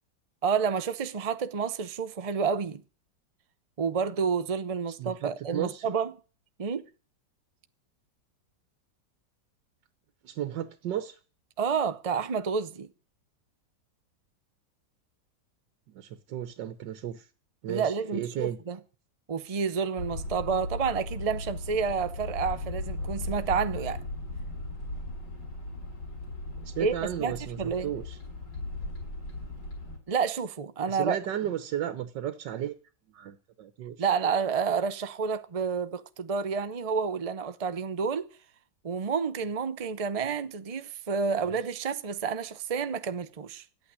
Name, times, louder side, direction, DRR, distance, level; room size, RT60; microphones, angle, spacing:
voice 1, 0.4-2.8 3.8-6.1 6.6-6.8 11.6-12.9 17.7-18.8 19.3-24.0 26.8-26.9 27.2-27.9 30.1-31.2 34.0-38.3 38.8-43.6, right 6 dB, 55° right, 0.4 m, -29 dB
voice 2, 5.0-5.9 10.2-11.2 15.9-17.3 17.6-18.6 26.6-28.2 30.9-32.7 33.1-34.1 41.5-41.6, right 10 dB, 80° right, 1.6 m, -34 dB
sound 1, 20.0-30.0, left 2 dB, 75° left, 5.2 m, -37 dB
13.0 x 8.8 x 9.7 m
omnidirectional pair, 1.9 m